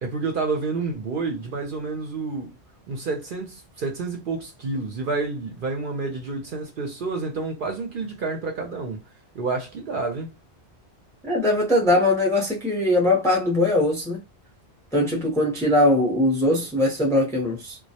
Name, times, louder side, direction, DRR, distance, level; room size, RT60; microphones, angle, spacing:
voice 1, 0.0-2.5 2.9-9.0 9.3-10.3, right 3 dB, 60° right, 0.6 m, -29 dB
voice 2, 11.3-14.2 14.9-17.8, left 1 dB, 5° left, 0.5 m, -21 dB
2.2 x 2.0 x 2.7 m
omnidirectional pair, 1.2 m